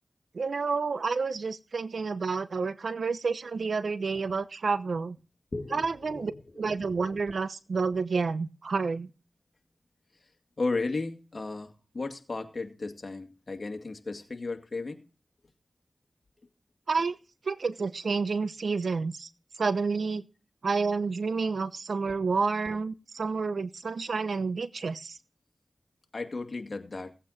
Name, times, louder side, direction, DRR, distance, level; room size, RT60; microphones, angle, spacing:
voice 1, 0.3-5.2 5.7-6.3 6.6-9.1 16.9-17.2 17.5-19.3 19.6-20.2 20.6-25.2, right 4 dB, 85° right, 0.9 m, -29 dB
voice 2, 5.5-6.5 10.6-15.0 26.1-27.1, left 3 dB, 60° left, 2.3 m, -35 dB
17.5 x 8.4 x 4.2 m
cardioid pair, 55°, 0 cm